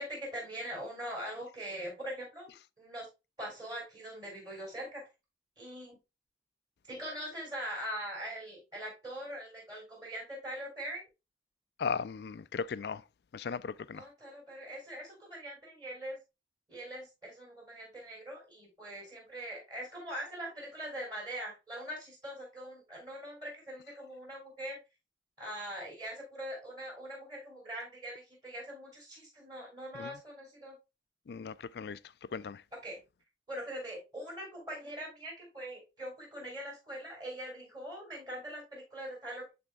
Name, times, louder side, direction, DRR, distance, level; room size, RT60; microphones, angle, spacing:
voice 1, 0.0-3.1 3.4-5.0 5.6-6.0 6.9-11.0 13.9-16.2 16.7-24.8 25.4-30.8 32.8-33.0 33.5-39.5, equal, 20° right, 3.9 m, -42 dB
voice 2, 11.8-13.0 13.3-14.1 29.9-30.1 31.3-32.0 32.3-32.6, left 5 dB, 60° left, 0.3 m, -37 dB
11.5 x 4.3 x 2.2 m
head